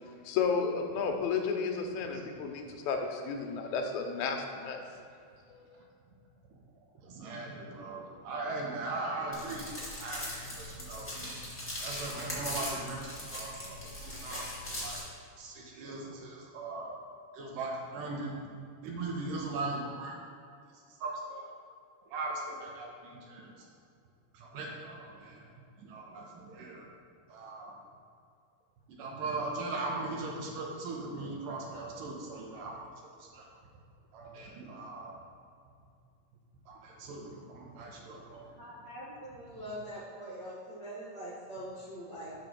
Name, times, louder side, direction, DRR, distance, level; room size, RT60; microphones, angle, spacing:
voice 1, 0.2-4.8 5.7-5.8, left 5 dB, 75° left, 3 dB, 1.9 m, -32 dB
voice 2, 7.0-9.7 10.0-11.4 11.8-13.6 14.0-14.5 14.8-15.0 15.4-17.0 17.3-18.3 18.8-20.2 21.0-21.4 22.1-23.5 24.3-25.4 25.8-26.9 27.3-27.8 28.9-32.9 33.3-33.4 34.1-35.2 36.7-38.5, right 3 dB, 80° right, -1 dB, 2.5 m, -39 dB
sound 1, 9.3-15.0, left 1 dB, 15° left, 0.4 m, -40 dB
voice 3, 38.6-42.3, equal, 65° right, -9 dB, 1.1 m, -43 dB
6.0 x 4.9 x 5.9 m, 2.3 s
omnidirectional pair, 3.8 m